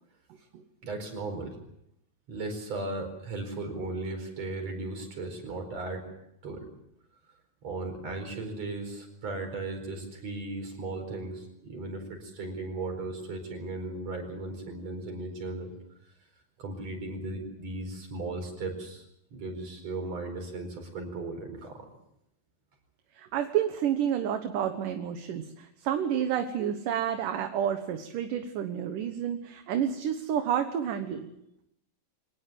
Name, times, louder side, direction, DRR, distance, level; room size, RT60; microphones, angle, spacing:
voice 1, 0.8-1.6 2.3-6.1 6.4-6.7 7.6-15.7 16.0-16.1 16.6-19.0 19.3-21.9, right 2 dB, 45° right, 6 dB, 5.7 m, -36 dB
voice 2, 23.2-31.3, right 9 dB, 70° right, 7 dB, 2.7 m, -30 dB
24.5 x 19.5 x 7.6 m, 0.79 s
omnidirectional pair, 4.2 m